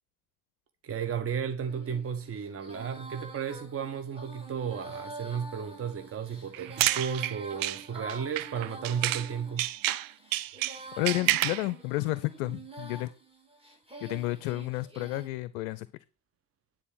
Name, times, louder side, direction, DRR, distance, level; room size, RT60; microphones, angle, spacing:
voice 1, 0.8-9.7, right 7 dB, 30° right, 1.1 m, -34 dB
Female singing, 1.6-15.3, right 2 dB, 10° right, 3.3 m, -46 dB
sound 1, 6.5-9.3 9.6-11.7, right 15 dB, 45° right, 0.6 m, -29 dB
voice 2, 11.0-13.1 14.0-15.9, left 18 dB, 60° left, 0.5 m, -31 dB
10.0 x 4.3 x 5.9 m
figure-of-eight pair, 50°, 49 cm